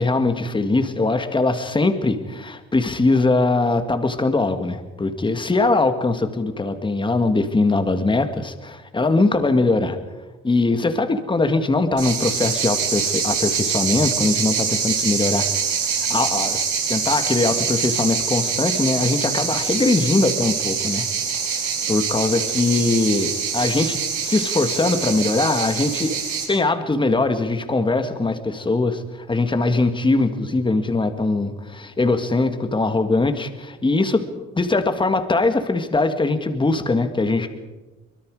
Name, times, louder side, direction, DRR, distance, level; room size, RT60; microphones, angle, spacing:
voice 1, 0.0-10.0 10.4-16.6 16.9-21.1 21.9-26.2 26.5-34.2 34.6-37.5, left 3 dB, 15° left, 8 dB, 2.0 m, -21 dB
sound 1, 12.0-26.4, right 6 dB, 85° right, 7.2 m, -24 dB
24.5 x 22.0 x 4.9 m, 1.2 s
cardioid pair, 115°, 29 cm